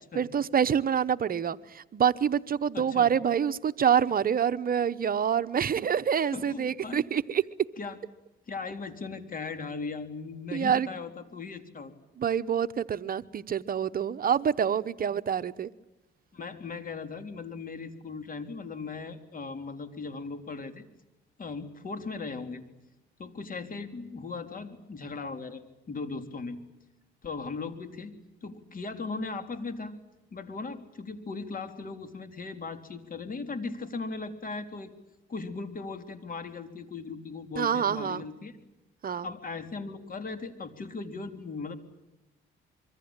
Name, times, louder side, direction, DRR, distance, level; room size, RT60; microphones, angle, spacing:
voice 1, 0.1-7.4 10.5-10.9 12.2-15.7 37.6-38.2 39.0-39.3, right 8 dB, 45° right, 0.9 m, -26 dB
voice 2, 2.7-3.1 6.3-7.0 7.8-8.0 8.5-11.9 16.3-20.9 21.4-22.6 23.2-25.6 25.9-26.6 27.2-28.1 28.4-29.9 30.3-34.9 35.3-38.5 39.2-41.8, left 4 dB, 45° left, 3.5 m, -38 dB
26.0 x 24.0 x 8.9 m
cardioid pair, 90°, 20 cm